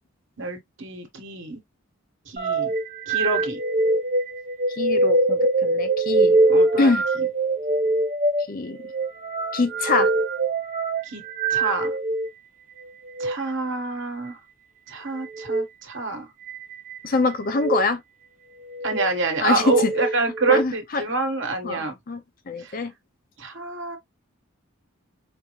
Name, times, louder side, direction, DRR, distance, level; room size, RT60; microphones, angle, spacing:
voice 1, 0.4-1.6 2.3-2.7 3.1-3.6 6.5-6.9 7.2-7.3 11.0-11.2 11.5-12.0 13.2-14.4 14.9-16.3 18.8-22.0 22.6-22.8 23.4-24.0, right 3 dB, 60° right, 1.3 m, -27 dB
sound 1, 2.4-12.3 13.1-13.3 15.3-15.7 16.5-17.0 17.5-17.8 18.6-19.1 19.6-20.6, right 2 dB, 35° right, 0.6 m, -23 dB
voice 2, 4.8-6.4 6.8-7.0 8.5-8.8 9.5-10.1 17.0-18.0 19.4-19.9 20.5-21.0 21.6-22.2 22.5-22.9, left 3 dB, 40° left, 0.5 m, -24 dB
5.1 x 2.1 x 3.0 m
head